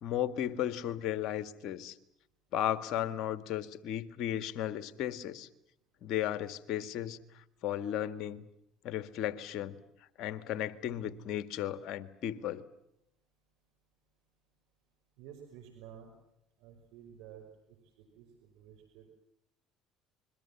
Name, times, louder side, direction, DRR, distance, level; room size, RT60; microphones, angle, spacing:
voice 1, 0.0-2.0 2.5-5.5 6.0-7.2 7.6-8.4 8.8-9.8 10.2-12.6, left 11 dB, 65° left, 11 dB, 1.9 m, -35 dB
voice 2, 15.2-16.2 16.6-19.1, right 9 dB, 75° right, 4 dB, 5.5 m, -52 dB
27.5 x 23.0 x 7.4 m, 0.80 s
hypercardioid pair, 75°, 0 cm